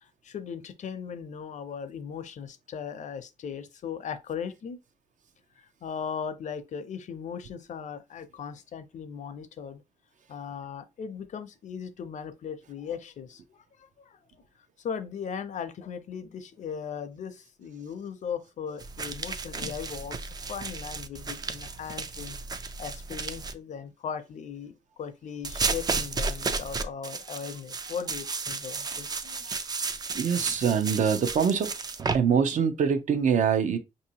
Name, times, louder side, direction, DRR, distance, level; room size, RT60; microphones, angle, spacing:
voice 1, 0.0-4.8 5.6-9.8 10.3-14.2 14.8-22.4 22.8-29.6, left 7 dB, 60° left, 0.5 m, -38 dB
sound 1, 18.8-23.5 25.4-32.2, right 4 dB, 30° right, 0.3 m, -33 dB
voice 2, 30.1-31.7 32.1-33.8, right 7 dB, 65° right, 0.6 m, -24 dB
5.2 x 2.7 x 2.7 m
wide cardioid pair, 140°, 14 cm